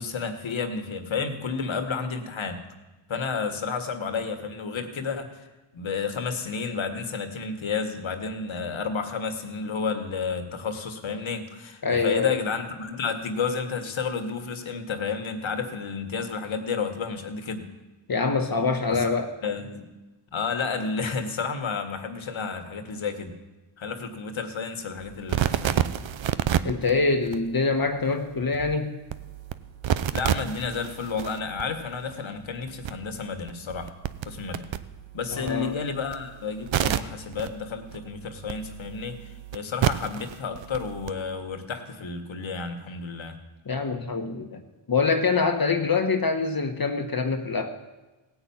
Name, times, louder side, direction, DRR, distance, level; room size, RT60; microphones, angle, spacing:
voice 1, 0.0-2.6 3.1-5.4 5.7-17.7 18.9-19.1 19.4-19.8 20.3-23.3 23.8-25.8 29.9-33.9 34.3-34.7 35.1-43.4, left 5 dB, 70° left, 6 dB, 1.7 m, -31 dB
voice 2, 11.8-12.4 18.1-19.4 26.6-29.0 35.3-35.7 43.7-44.6 44.9-47.8, left 4 dB, 45° left, 5 dB, 1.3 m, -25 dB
sound 1, 25.0-41.1, right 10 dB, 65° right, 0.7 m, -31 dB
17.0 x 5.9 x 8.7 m, 1.1 s
cardioid pair, 55°, 49 cm